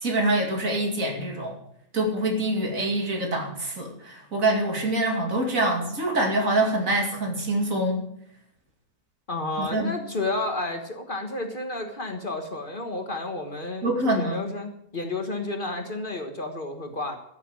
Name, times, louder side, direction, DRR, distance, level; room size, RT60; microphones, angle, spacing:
voice 1, 0.0-1.6 1.9-8.0 9.6-9.9 13.8-14.4, right 1 dB, 65° right, 2 dB, 2.9 m, -25 dB
voice 2, 9.3-17.2, left 2 dB, 35° left, 4 dB, 1.5 m, -31 dB
13.5 x 6.6 x 8.8 m, 0.74 s
omnidirectional pair, 1.5 m